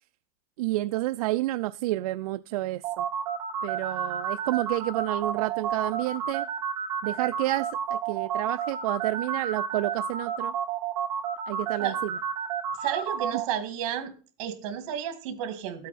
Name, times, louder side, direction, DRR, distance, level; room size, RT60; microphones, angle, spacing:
voice 1, 0.6-3.1 3.6-6.5 7.0-10.5 11.5-12.2, right 17 dB, 75° right, 11 dB, 0.4 m, -30 dB
sound 1, 2.8-13.4, right 8 dB, 20° right, 2.6 m, -31 dB
voice 2, 12.8-14.1 14.4-15.9, right 9 dB, 50° right, 8 dB, 2.0 m, -32 dB
12.5 x 8.4 x 4.2 m, 0.40 s
supercardioid pair, 180°, 19 cm